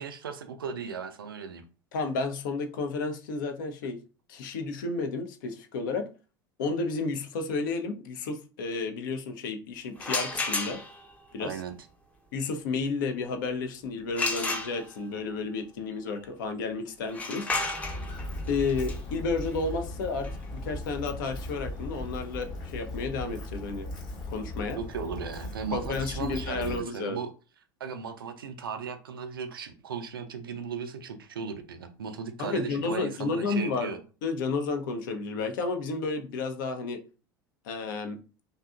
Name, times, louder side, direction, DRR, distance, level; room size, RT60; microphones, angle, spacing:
voice 1, 0.0-1.6 11.4-11.7 24.8-27.3 27.8-34.0, right 6 dB, 75° right, 0.4 m, -36 dB
voice 2, 1.9-4.0 4.3-6.1 6.6-10.8 11.3-11.6 12.3-17.5 18.5-23.9 24.3-24.8 25.7-27.2 32.4-37.0 37.6-38.2, left 4 dB, 60° left, 0.5 m, -32 dB
sound 1, 10.0-11.1 14.1-15.2 17.0-22.7, left 3 dB, 10° left, 0.6 m, -34 dB
Walk footsteps, 17.8-26.8, left 1 dB, 40° left, 1.0 m, -38 dB
2.7 x 2.3 x 2.3 m
figure-of-eight pair, 75°, 12 cm